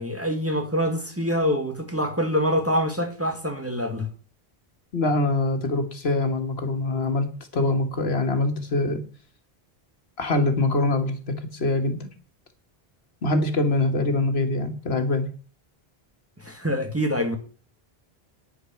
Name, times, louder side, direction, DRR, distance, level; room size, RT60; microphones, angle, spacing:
voice 1, 0.0-4.1 16.4-17.4, equal, 15° right, 1.9 m, -25 dB
voice 2, 4.9-7.3 7.5-9.0 10.2-12.1 13.2-15.3, left 2 dB, 80° left, 1.9 m, -24 dB
11.0 x 10.0 x 4.6 m
omnidirectional pair, 1.0 m